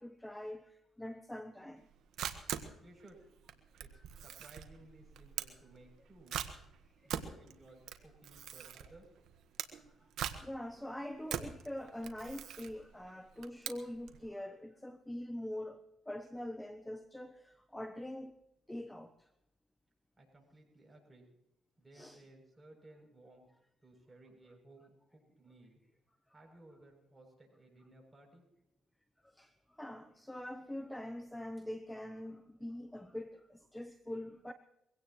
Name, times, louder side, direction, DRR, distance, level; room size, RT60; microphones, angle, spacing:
voice 1, 0.0-1.9 3.9-4.0 10.4-18.4 18.7-19.1 21.9-22.2 29.4-34.5, left 1 dB, 10° left, 0.9 m, -44 dB
Camera, 1.8-14.2, right 9 dB, 80° right, 1.5 m, -43 dB
voice 2, 2.8-3.2 3.8-6.4 7.0-9.1 20.2-21.3 21.8-23.5 23.8-25.8 26.3-28.4, right 2 dB, 15° right, 7.8 m, -59 dB
23.0 x 17.0 x 3.2 m
cardioid pair, 90°, 0 cm